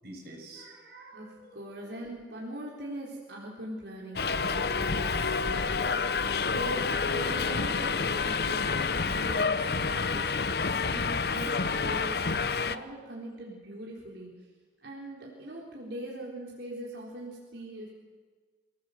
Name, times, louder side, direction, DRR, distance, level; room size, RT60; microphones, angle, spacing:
voice 1, 0.0-2.1, right 2 dB, 60° right, -1 dB, 6.8 m, -49 dB
voice 2, 1.1-14.3 14.8-17.9, right 1 dB, 85° right, -3 dB, 4.2 m, -41 dB
Subway metro underground, 4.2-12.8, left 5 dB, 60° left, 0.8 m, -28 dB
25.0 x 18.0 x 8.0 m, 1.4 s
head